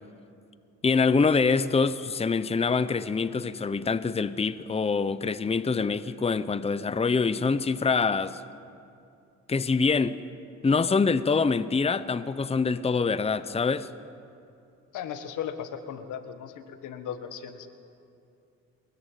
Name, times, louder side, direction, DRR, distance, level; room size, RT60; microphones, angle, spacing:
voice 1, 0.8-8.4 9.5-10.2 10.6-13.9, left 4 dB, 20° left, 0.8 m, -25 dB
voice 2, 14.9-17.7, left 8 dB, 85° left, 1.8 m, -37 dB
23.5 x 21.0 x 9.2 m
cardioid pair, 90°, 30 cm